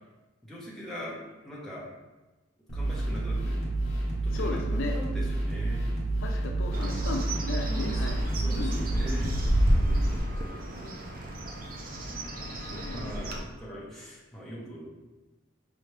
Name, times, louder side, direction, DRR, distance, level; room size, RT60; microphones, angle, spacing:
voice 1, 0.4-1.2 1.4-1.9 2.7-3.6 4.2-5.9 7.7-10.4 12.8-15.0, equal, ahead, -7 dB, 1.0 m, -41 dB
sound 1, 2.7-10.2, right 2 dB, 40° left, 1.3 m, -29 dB
voice 2, 4.3-4.9 6.2-8.2 8.6-9.5 12.0-12.4 12.7-13.1, left 3 dB, 70° left, 2 dB, 0.5 m, -37 dB
Bird, 6.7-13.4, equal, 45° right, 0.5 m, -31 dB
4.9 x 3.0 x 3.3 m, 1.1 s
head